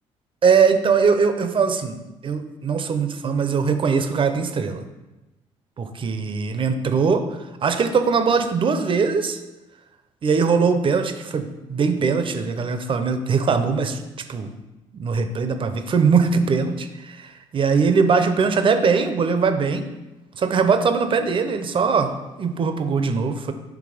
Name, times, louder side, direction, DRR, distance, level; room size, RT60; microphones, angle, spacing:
voice 1, 0.4-2.0 2.2-4.8 5.8-7.3 7.6-9.4 10.2-14.0 14.3-14.5 14.9-19.9 20.3-23.5, right 5 dB, 45° right, 8 dB, 0.7 m, -21 dB
6.0 x 3.2 x 4.9 m, 1.0 s
cardioid pair, 85°, 13 cm